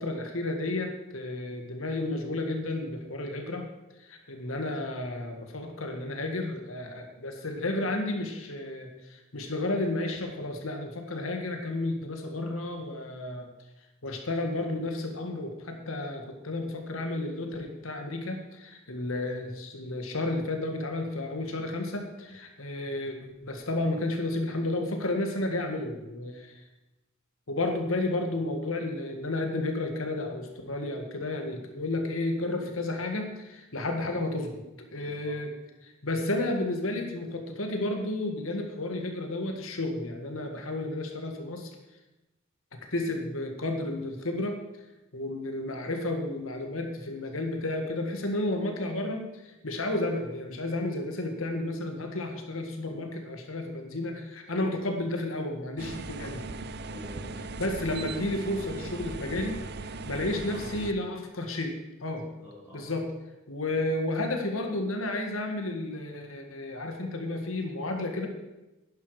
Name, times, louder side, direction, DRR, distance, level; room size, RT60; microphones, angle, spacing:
voice 1, 0.0-3.6 4.0-13.5 14.0-23.2 23.4-26.6 27.5-34.6 34.9-35.5 35.8-41.7 42.9-44.6 45.1-56.4 57.6-59.6 59.8-61.7 62.0-62.2 62.7-63.1 63.5-68.3, left 2 dB, 90° left, 4 dB, 1.8 m, -32 dB
voice 2, 34.9-35.3 56.8-57.4 60.2-60.9 62.3-62.9, equal, 10° right, -11 dB, 4.3 m, -48 dB
sound 1, 55.8-60.9, right 3 dB, 55° right, 0.6 m, -38 dB
11.5 x 10.5 x 4.9 m, 0.99 s
head